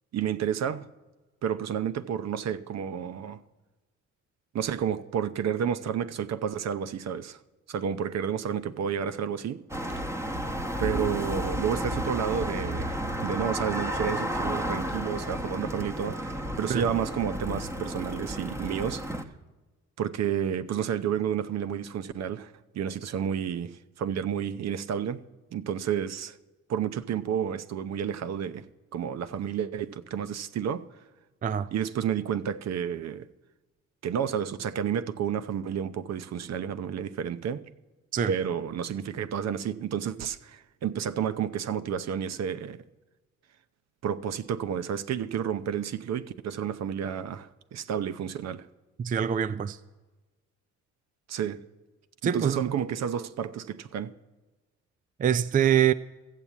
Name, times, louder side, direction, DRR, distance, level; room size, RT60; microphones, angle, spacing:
voice 1, 0.1-0.9 1.4-3.4 4.5-7.4 7.7-9.6 10.8-19.0 20.0-25.2 25.5-26.4 26.7-28.6 28.9-30.8 31.7-33.3 34.0-37.6 38.3-42.8 44.0-48.7 51.3-51.6 52.2-54.1, right 8 dB, 60° right, 0.7 m, -31 dB
sound 1, 9.7-19.2, equal, 10° right, 1.0 m, -32 dB
voice 2, 49.0-49.8 52.2-52.7 55.2-55.9, right 9 dB, 30° right, 0.4 m, -24 dB
14.0 x 7.3 x 8.2 m
cardioid pair, 90°, 30 cm